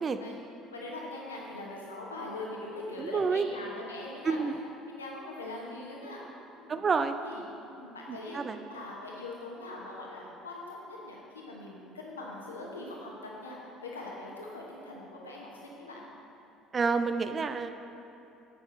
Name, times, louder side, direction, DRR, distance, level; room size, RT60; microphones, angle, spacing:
voice 1, 0.7-4.4 4.9-6.2 6.6-6.8 7.2-7.4 7.7-16.0, left 2 dB, 80° left, -2 dB, 1.1 m, -42 dB
voice 2, 3.0-3.4 4.2-4.6 6.7-7.2 8.3-8.6 16.7-17.7, right 5 dB, 30° right, 9 dB, 0.4 m, -28 dB
7.9 x 7.0 x 3.9 m, 2.8 s
figure-of-eight pair, 60°, 0 cm